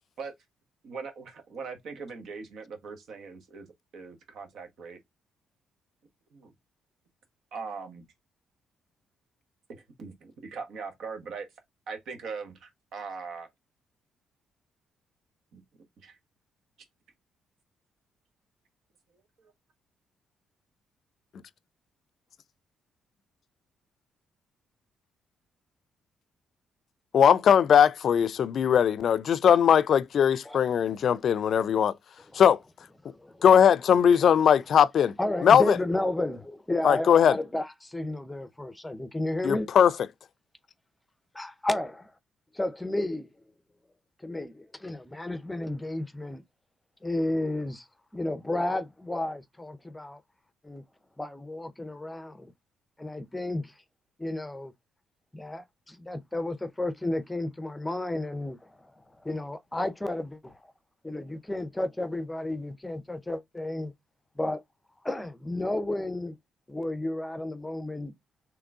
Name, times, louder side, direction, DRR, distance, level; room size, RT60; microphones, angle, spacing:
voice 1, 0.8-3.7 3.9-5.0 6.3-6.5 7.5-8.0 9.7-11.5 11.9-13.5 15.5-15.6 16.0-16.2 19.4-19.5, right 5 dB, 70° right, 1.2 m, -40 dB
voice 2, 27.1-31.9 32.3-32.6 33.4-35.1 35.4-35.8 36.8-37.3 39.4-39.9, left 8 dB, 60° left, 0.4 m, -20 dB
voice 3, 33.1-33.4 34.2-34.5 35.2-39.7 41.3-42.1 42.5-43.3 44.2-46.4 47.0-47.9 48.1-50.2 50.6-50.8 51.2-52.5 53.0-53.7 54.2-54.7 55.3-60.7 61.0-63.9 64.4-64.6 65.0-66.4 66.7-68.1, left 1 dB, 10° left, 0.6 m, -32 dB
3.7 x 3.1 x 3.6 m
cardioid pair, 90°, 0 cm